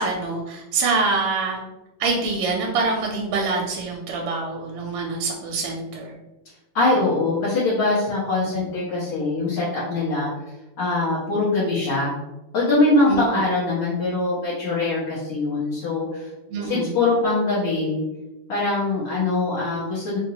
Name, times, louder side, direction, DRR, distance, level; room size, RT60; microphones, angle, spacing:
voice 1, 0.0-1.6 2.0-6.1 8.5-8.7 13.1-13.2 16.5-16.9, right 3 dB, 85° right, 0 dB, 1.5 m, -25 dB
voice 2, 6.7-10.3 10.8-12.1 12.5-16.2 16.6-18.0 18.5-20.2, left 2 dB, 60° left, -9 dB, 1.5 m, -22 dB
3.9 x 2.2 x 2.8 m, 1.0 s
omnidirectional pair, 2.4 m